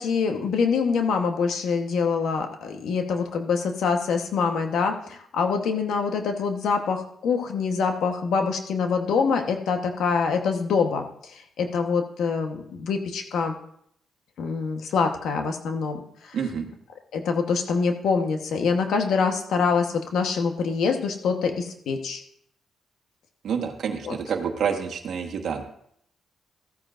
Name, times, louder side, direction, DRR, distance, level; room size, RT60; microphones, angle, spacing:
voice 1, 0.0-13.5 14.4-16.4 17.1-22.2 24.0-24.1, left 5 dB, 85° left, 5 dB, 1.1 m, -25 dB
voice 2, 16.3-16.7 23.4-25.6, right 7 dB, 70° right, 4 dB, 1.3 m, -28 dB
15.0 x 9.1 x 2.5 m, 0.69 s
cardioid pair, 90°, 0 cm